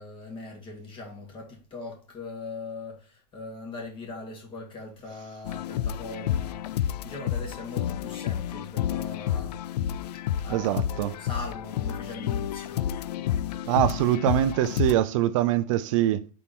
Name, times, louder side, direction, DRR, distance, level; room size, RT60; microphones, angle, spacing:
voice 1, 0.0-6.6 7.0-9.6 10.4-12.8, left 3 dB, 25° left, 2.4 m, -40 dB
sound 1, 5.4-14.9, left 10 dB, 85° left, 0.4 m, -30 dB
voice 2, 10.5-11.1 13.7-16.3, right 12 dB, 55° right, 0.4 m, -24 dB
4.4 x 4.3 x 5.3 m
supercardioid pair, 150°, 20 cm